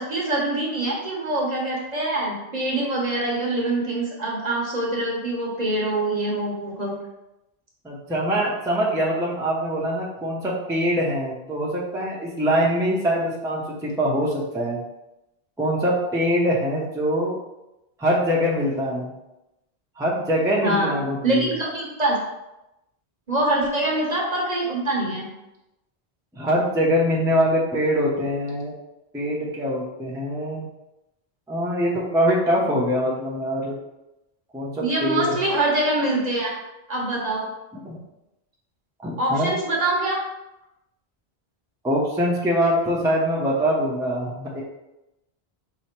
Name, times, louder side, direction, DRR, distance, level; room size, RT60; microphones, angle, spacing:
voice 1, 0.0-6.9 20.6-20.9 21.2-22.2 23.3-25.2 34.8-36.5 36.9-37.5 39.2-40.2, right 2 dB, 45° right, -3 dB, 0.9 m, -24 dB
voice 2, 7.8-14.8 15.6-17.4 18.0-19.1 20.0-21.5 26.3-28.7 29.1-30.6 31.5-33.7 34.5-35.2 37.8-38.0 39.0-39.5 41.8-44.6, equal, 5° right, -5 dB, 0.6 m, -23 dB
4.9 x 2.0 x 4.3 m, 0.93 s
omnidirectional pair, 1.1 m